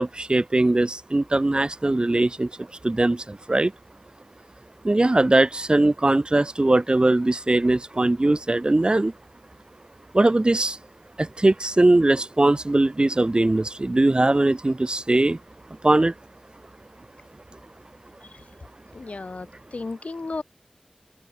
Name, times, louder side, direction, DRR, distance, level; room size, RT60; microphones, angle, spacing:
voice 1, 0.0-2.5 2.8-3.7 4.8-9.1 10.1-10.8 11.2-15.4 15.8-16.1, right 2 dB, 45° right, 1.1 m, -20 dB
voice 2, 18.9-20.4, left 3 dB, 90° left, 1.1 m, -34 dB
wide cardioid pair, 45°, 2 cm